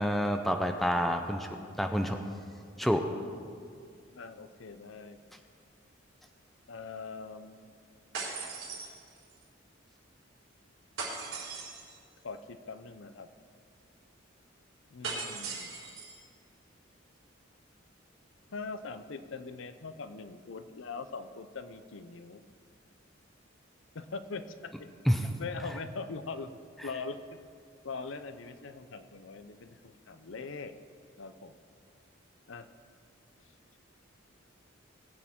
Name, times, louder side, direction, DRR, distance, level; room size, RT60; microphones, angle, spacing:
voice 1, 0.0-1.5 1.8-2.2 2.8-3.0 25.1-25.3, equal, ahead, 5 dB, 0.6 m, -28 dB
voice 2, 4.1-5.2 6.7-7.7 12.2-13.3 14.9-15.8 18.5-22.4 23.9-24.7 25.2-26.5 26.8-27.5 27.8-30.7 31.2-31.6 32.5-32.7, left 4 dB, 70° left, 10 dB, 0.6 m, -42 dB
sound 1, 8.1-9.4 11.0-12.0 15.0-16.2, right 4 dB, 85° right, 3.7 m, -39 dB
20.5 x 8.5 x 3.7 m, 2.2 s
head